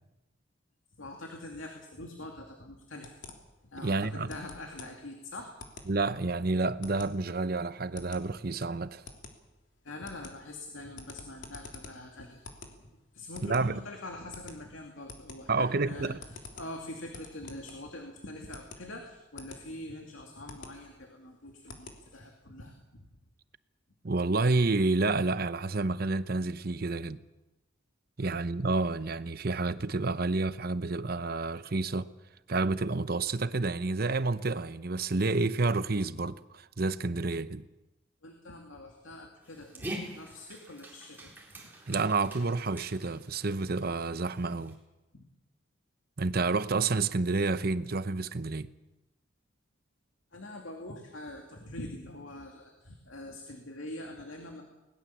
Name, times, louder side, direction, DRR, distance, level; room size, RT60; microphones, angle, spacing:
voice 1, 1.0-3.2 3.6-5.6 9.8-12.4 12.8-23.1 28.2-28.3 38.2-41.7 45.1-45.2 50.3-54.6, left 1 dB, 85° left, 2.6 m, -44 dB
sound 1, 3.0-22.4, left 3 dB, 65° left, 3.3 m, -49 dB
voice 2, 3.8-4.3 5.9-9.0 13.4-13.8 15.5-16.2 24.0-27.2 28.2-32.1 32.5-37.6 41.9-44.8 46.2-48.7, right 3 dB, 50° right, 0.8 m, -29 dB
Dog, 39.4-44.8, right 1 dB, 10° right, 4.1 m, -45 dB
21.0 x 19.5 x 7.3 m
head